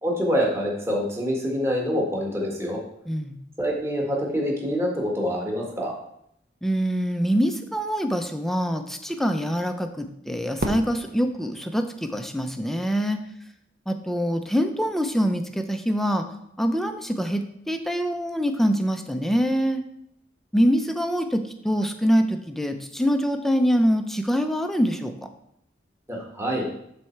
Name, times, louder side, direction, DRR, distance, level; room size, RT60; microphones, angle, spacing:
voice 1, 0.0-2.8 3.6-6.0 26.1-26.7, equal, 15° right, -2 dB, 1.8 m, -26 dB
voice 2, 6.6-13.2 13.9-16.2 16.6-19.8 20.5-25.1, equal, ahead, 6 dB, 0.7 m, -24 dB
Fireworks, 10.6-12.8, right 1 dB, 55° right, 1.1 m, -34 dB
11.5 x 4.2 x 4.6 m, 0.75 s
head